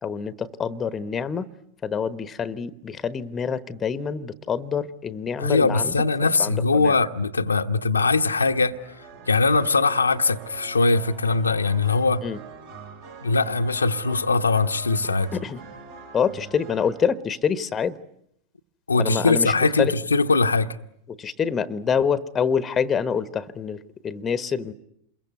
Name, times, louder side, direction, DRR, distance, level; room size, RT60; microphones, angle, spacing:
voice 1, 0.0-1.5 1.8-5.9 6.4-7.0 7.9-8.1 12.2-12.4 15.0-15.6 16.1-18.0 19.0-19.9 21.1-24.7, left 6 dB, 20° left, 1.1 m, -26 dB
voice 2, 5.4-8.8 9.3-12.2 13.2-15.3 18.9-20.7, left 3 dB, 80° left, 1.0 m, -21 dB
sound 1, 8.3-17.0, right 5 dB, 60° right, 7.0 m, -44 dB
27.5 x 22.0 x 9.5 m
figure-of-eight pair, 90°, 0 cm